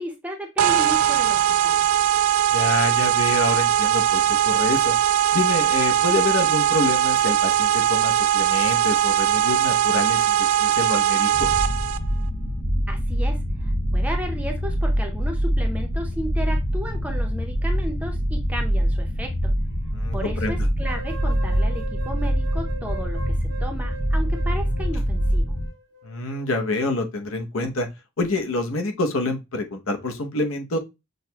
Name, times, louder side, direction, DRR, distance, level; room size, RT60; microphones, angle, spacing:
voice 1, 0.0-1.8 12.9-19.5 20.1-25.5, equal, 5° right, 0.6 m, -34 dB
sound 1, 0.6-12.0, right 10 dB, 85° right, 0.3 m, -20 dB
voice 2, 2.5-5.0 5.3-11.5 19.9-20.6 26.0-27.9 28.2-30.8, left 2 dB, 75° left, 0.7 m, -27 dB
sound 2, 11.3-25.7, equal, 25° left, 1.0 m, -24 dB
sound 3, 20.8-26.8, right 4 dB, 55° right, 0.7 m, -41 dB
6.4 x 2.1 x 2.8 m
head